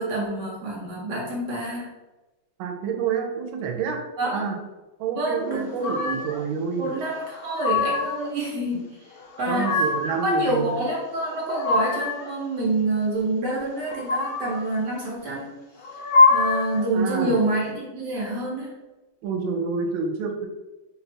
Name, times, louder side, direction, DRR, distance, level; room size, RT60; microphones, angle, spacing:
voice 1, 0.0-1.9 4.2-4.4 5.2-6.2 6.8-15.5 16.3-18.7, right 2 dB, 65° right, -3 dB, 1.3 m, -27 dB
voice 2, 2.6-4.0 4.3-4.6 5.0-7.1 8.7-8.8 9.5-10.8 16.9-17.4 19.2-20.5, right 5 dB, 90° right, 4 dB, 1.4 m, -28 dB
sound 1, 5.8-6.4 7.2-8.3 9.2-10.2 11.2-12.3 13.8-14.7 15.8-16.8, left 3 dB, 75° left, 0.8 m, -23 dB
3.3 x 2.3 x 4.1 m, 1.1 s
omnidirectional pair, 2.2 m